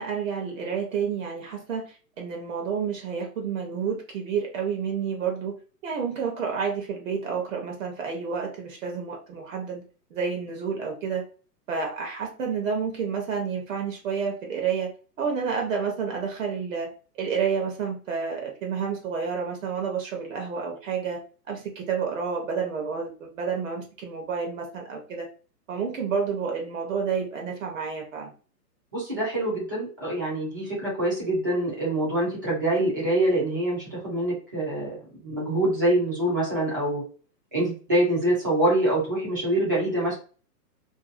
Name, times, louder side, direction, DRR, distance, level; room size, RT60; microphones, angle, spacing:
voice 1, 0.0-9.8 10.1-11.3 11.7-14.9 15.2-25.3 25.7-28.3, right 6 dB, 55° right, 2 dB, 0.8 m, -30 dB
voice 2, 28.9-35.0 35.2-37.0 37.5-40.1, right 1 dB, 15° right, -8 dB, 0.4 m, -25 dB
2.6 x 2.2 x 2.4 m, 0.37 s
hypercardioid pair, 160°, 49 cm